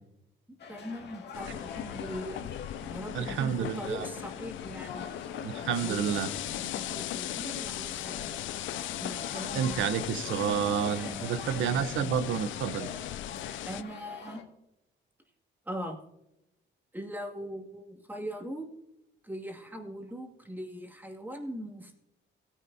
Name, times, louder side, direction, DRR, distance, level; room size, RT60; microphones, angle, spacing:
sound 1, 0.6-14.4, left 5 dB, 60° left, 2.0 m, -45 dB
voice 1, 0.7-2.5 2.8-5.1 5.8-6.2 6.5-8.4 9.0-9.9 11.0-12.1 13.7-14.4 15.7-16.0 16.9-18.7 19.2-22.0, equal, 10° right, 1 dB, 2.2 m, -40 dB
sound 2, 1.3-13.8, left 13 dB, 75° left, 0.4 m, -38 dB
voice 2, 3.1-4.0 5.4-6.3 9.5-12.9, right 8 dB, 75° right, 12 dB, 0.8 m, -30 dB
17.0 x 9.9 x 2.7 m, 0.85 s
cardioid pair, 90°, 20 cm